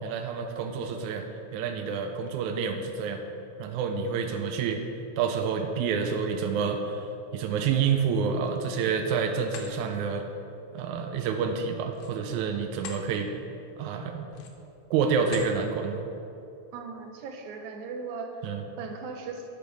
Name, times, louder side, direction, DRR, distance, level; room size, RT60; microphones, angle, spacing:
voice 1, 0.0-1.3 1.5-3.2 3.6-4.8 5.2-7.0 7.3-10.2 10.7-13.3 13.8-14.3 14.9-16.0 18.4-18.6, right 6 dB, 90° right, 4 dB, 1.7 m, -28 dB
sound 1, 8.3-9.0 9.4-9.7 11.9-13.1 13.5-13.7 14.3-14.7 15.2-15.6, left 6 dB, 85° left, 2.6 m, -44 dB
voice 2, 16.7-18.4 18.8-19.5, right 4 dB, 75° right, 4 dB, 1.9 m, -38 dB
8.6 x 5.1 x 6.2 m, 2.8 s
omnidirectional pair, 4.0 m